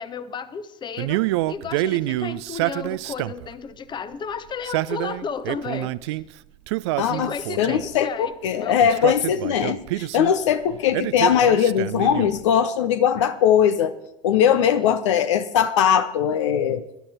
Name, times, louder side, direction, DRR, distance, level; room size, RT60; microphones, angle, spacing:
voice 1, 0.0-6.2 7.1-9.1 14.5-14.9, left 6 dB, 25° left, 14 dB, 1.0 m, -34 dB
Male speech man speaking, 1.0-3.5 4.5-6.2 6.7-8.0 8.8-10.3 10.9-12.4, right 18 dB, 55° right, 0.5 m, -27 dB
voice 2, 7.0-7.3 7.6-13.9 14.2-16.8, left 9 dB, 60° left, 11 dB, 0.8 m, -20 dB
19.0 x 11.5 x 4.3 m, 0.85 s
figure-of-eight pair, 70°, 17 cm